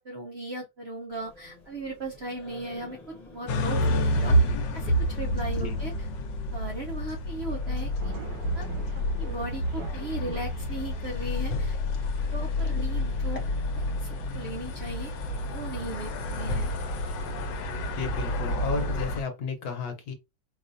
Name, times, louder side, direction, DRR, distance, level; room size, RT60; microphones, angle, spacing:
voice 1, 0.0-3.0 3.3-4.4 4.7-6.1 6.5-8.1 8.5-11.8 12.3-13.4 13.7-15.1 15.5-16.7, right 1 dB, 60° right, 0.6 m, -37 dB
Singing, 1.1-17.1, left 3 dB, 30° left, 0.9 m, -52 dB
sound 1, 3.5-19.2, left 1 dB, 85° left, 1.4 m, -29 dB
sound 2, 8.0-18.7, right 4 dB, 85° right, 1.4 m, -46 dB
voice 2, 18.0-20.1, left 4 dB, 65° left, 1.3 m, -33 dB
4.7 x 2.4 x 2.5 m
omnidirectional pair, 1.9 m